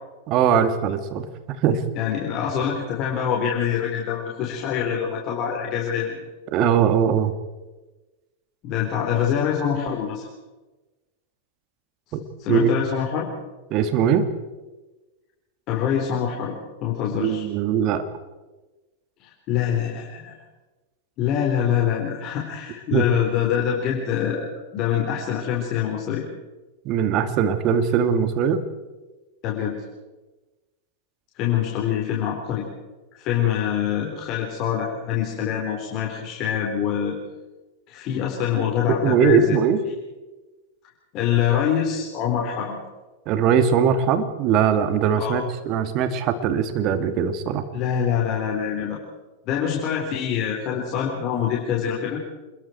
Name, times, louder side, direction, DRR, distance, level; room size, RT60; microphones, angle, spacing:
voice 1, 0.3-1.3 1.6-1.8 6.5-7.3 12.1-12.2 12.5-12.8 13.7-14.3 17.2-18.0 22.9-23.0 26.8-28.6 39.0-39.8 43.3-47.6, right 7 dB, 45° right, 9 dB, 2.4 m, -20 dB
voice 2, 2.0-6.2 8.6-10.2 12.4-13.3 15.7-16.5 16.8-17.4 19.2-20.3 21.2-26.2 29.4-29.8 31.4-32.6 33.2-37.1 37.9-39.6 41.1-42.8 45.2-45.4 47.7-49.0 49.5-52.2, left 9 dB, 45° left, -1 dB, 4.1 m, -25 dB
28.5 x 21.5 x 4.6 m, 1.2 s
hypercardioid pair, 95°, 0 cm